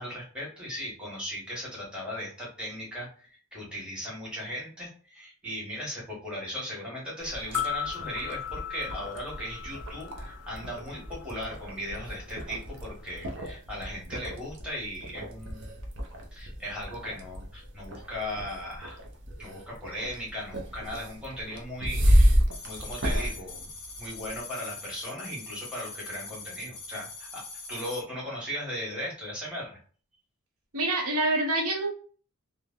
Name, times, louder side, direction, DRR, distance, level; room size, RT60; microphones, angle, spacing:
voice 1, 0.0-15.7 16.3-19.0 19.4-23.7 24.0-29.8, equal, 5° right, -5 dB, 1.2 m, -37 dB
sound 1, 7.2-24.4, equal, 55° right, 0.6 m, -31 dB
sound 2, 7.4-11.6 11.8-11.9, left 10 dB, 90° left, 0.3 m, -37 dB
sound 3, 22.5-28.0, left 3 dB, 25° left, 0.8 m, -43 dB
voice 2, 30.7-31.9, right 2 dB, 85° right, 1 dB, 0.8 m, -26 dB
3.1 x 2.1 x 2.4 m, 0.41 s
head